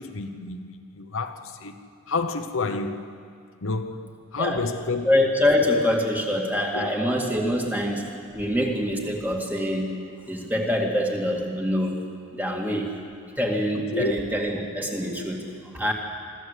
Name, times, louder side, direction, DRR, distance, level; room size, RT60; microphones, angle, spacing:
voice 1, 0.0-1.8 2.1-3.1 3.6-5.1 6.7-7.0 13.7-14.1, left 3 dB, 65° left, 0.9 m, -30 dB
voice 2, 5.0-8.1 8.3-10.0 10.2-12.0 12.3-12.9 13.4-15.9, left 1 dB, 10° right, 2.1 m, -25 dB
24.5 x 14.5 x 8.2 m
head